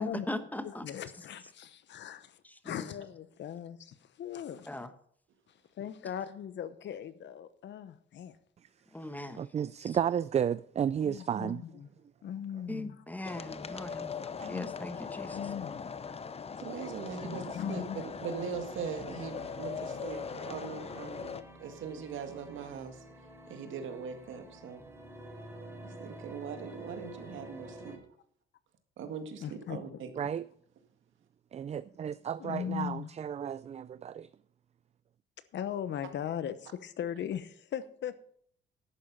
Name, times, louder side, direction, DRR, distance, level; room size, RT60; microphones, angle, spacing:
voice 1, 0.0-0.9 2.4-2.9 4.7-4.9 8.9-9.4 9.8-10.0 12.7-14.1 14.4-15.4 17.2-17.4, left 1 dB, 10° left, 1.1 m, -39 dB
voice 2, 0.6-2.3 2.6-4.7 5.5-8.3 11.0-11.9 12.2-13.0 14.4-14.7 15.3-15.8 17.3-18.0 29.4-30.0 32.4-33.1 35.5-38.3, left 9 dB, 65° left, 0.9 m, -39 dB
voice 3, 9.4-11.6 14.4-14.5 30.2-30.5 31.5-34.3, right 8 dB, 35° right, 0.3 m, -32 dB
sound 1, 13.2-21.4, left 6 dB, 30° left, 0.7 m, -40 dB
voice 4, 16.6-21.3 21.6-23.0 23.5-24.8 25.8-28.0 29.0-30.1, right 6 dB, 75° right, 1.9 m, -41 dB
sound 2, 18.5-28.0, right 1 dB, 15° right, 3.6 m, -49 dB
11.0 x 8.8 x 5.6 m
cardioid pair, 90°, 20 cm